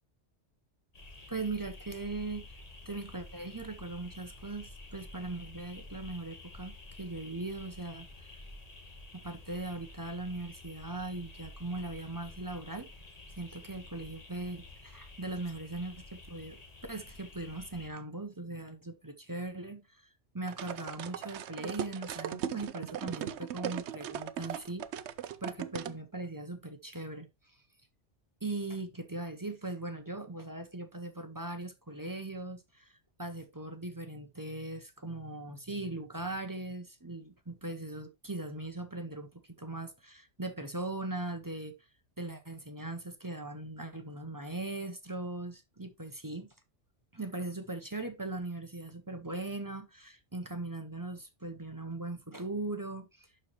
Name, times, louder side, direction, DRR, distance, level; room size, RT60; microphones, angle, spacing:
sound 1, 0.9-17.9, left 2 dB, 35° left, 1.7 m, -50 dB
voice 1, 1.3-2.5 2.9-8.3 9.1-12.9 13.3-16.6 16.9-24.9 25.4-27.6 28.4-41.7 42.2-46.5 47.1-53.3, right 2 dB, 20° right, 0.8 m, -39 dB
sound 2, 20.5-26.0, right 9 dB, 75° right, 0.9 m, -38 dB
11.5 x 4.4 x 3.0 m
omnidirectional pair, 1.2 m